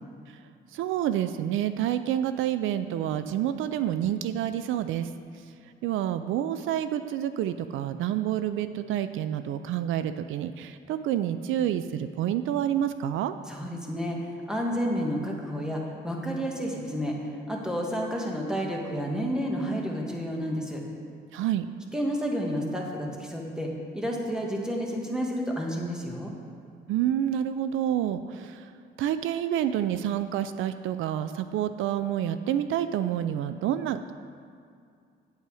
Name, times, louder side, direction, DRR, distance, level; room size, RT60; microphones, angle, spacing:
voice 1, 0.7-5.1 5.8-13.3 21.3-21.7 26.9-28.7 29.0-34.1, right 11 dB, 85° right, 11 dB, 0.4 m, -28 dB
voice 2, 13.5-17.2 17.5-20.8 21.9-26.3, equal, 5° right, -1 dB, 1.7 m, -30 dB
9.0 x 8.3 x 4.8 m, 2.3 s
cardioid pair, 90°, 20 cm